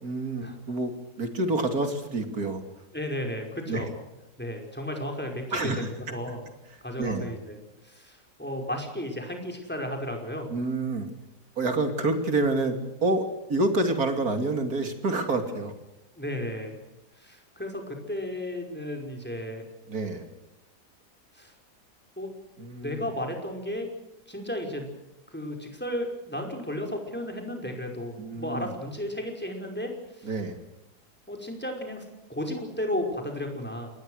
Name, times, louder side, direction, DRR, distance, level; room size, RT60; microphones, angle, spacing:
voice 1, 0.0-2.6 3.7-3.8 5.5-6.2 7.0-7.3 10.5-11.1 11.6-15.7 19.9-20.3 22.6-23.0 28.2-28.7 30.2-30.6, right 2 dB, 65° right, 6 dB, 3.4 m, -28 dB
voice 2, 2.9-3.9 4.4-5.7 6.0-6.4 6.8-7.6 7.8-10.5 16.2-16.7 17.2-19.6 21.3-21.5 22.2-22.3 22.8-23.9 24.3-24.9 25.3-30.3 31.3-32.0 32.3-33.9, left 1 dB, 5° left, 2 dB, 5.2 m, -34 dB
28.0 x 21.5 x 6.5 m, 0.94 s
omnidirectional pair, 1.7 m